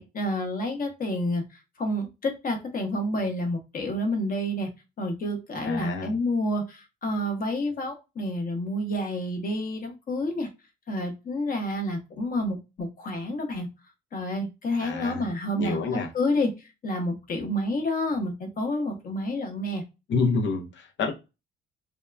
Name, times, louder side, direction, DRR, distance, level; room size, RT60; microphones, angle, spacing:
voice 1, 0.0-4.7 5.0-10.5 10.9-13.7 14.1-16.5 16.8-19.8, left 1 dB, 45° left, 0.9 m, -29 dB
voice 2, 5.6-6.1 14.8-15.3 15.6-16.1 20.1-21.1, left 4 dB, 70° left, 0.7 m, -28 dB
2.8 x 2.3 x 2.2 m
cardioid pair, 90°, 20 cm